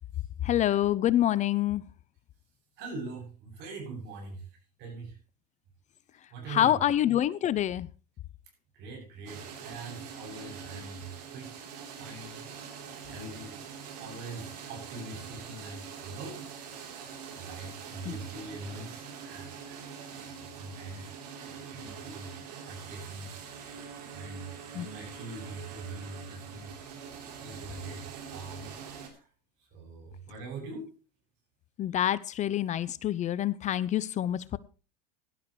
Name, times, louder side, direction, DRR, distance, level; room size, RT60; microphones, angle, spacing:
voice 1, 0.4-1.8 6.5-7.9 18.0-18.2 24.7-24.9 31.8-34.6, left 12 dB, 35° left, 19 dB, 0.6 m, -26 dB
voice 2, 2.8-4.4 4.8-5.1 6.3-6.8 8.7-11.5 12.0-12.4 13.1-13.6 14.0-16.5 17.4-19.8 20.3-21.1 21.7-22.3 22.6-23.5 24.1-26.7 27.4-28.0 28.3-28.7 29.7-30.9, right 3 dB, 55° right, 3 dB, 7.6 m, -42 dB
sound 1, 9.3-29.1, right 6 dB, 75° right, 3.5 m, -44 dB
17.0 x 11.5 x 3.2 m, 0.34 s
hypercardioid pair, 90°, 21 cm